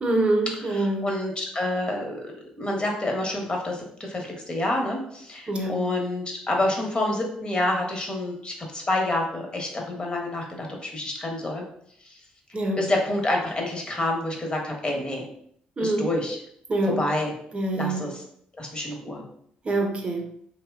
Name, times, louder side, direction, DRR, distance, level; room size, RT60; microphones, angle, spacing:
voice 1, 0.0-1.1 5.5-5.8 12.5-12.8 15.8-16.1 16.7-17.0 17.5-18.0 19.6-20.2, right 2 dB, 35° right, 2 dB, 0.7 m, -25 dB
voice 2, 0.6-2.2 2.6-11.6 12.8-15.2 15.8-16.4 16.8-17.3 17.7-18.2 18.6-19.2, left 1 dB, 30° left, 0 dB, 1.0 m, -28 dB
2.8 x 2.1 x 3.5 m, 0.68 s
supercardioid pair, 65°, 3 cm